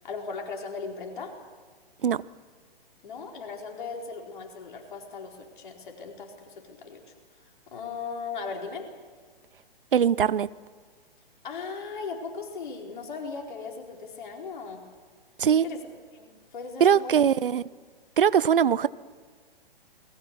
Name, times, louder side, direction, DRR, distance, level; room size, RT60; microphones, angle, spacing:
voice 1, 0.0-1.3 3.0-7.0 7.4-8.9 11.4-14.8 15.4-15.8 16.1-17.2, left 5 dB, 55° left, 4.3 m, -38 dB
voice 2, 9.9-10.5 15.4-15.7 16.8-17.7 18.2-18.9, right 8 dB, 65° right, 0.7 m, -21 dB
28.5 x 20.0 x 6.8 m
figure-of-eight pair, 120°, 29 cm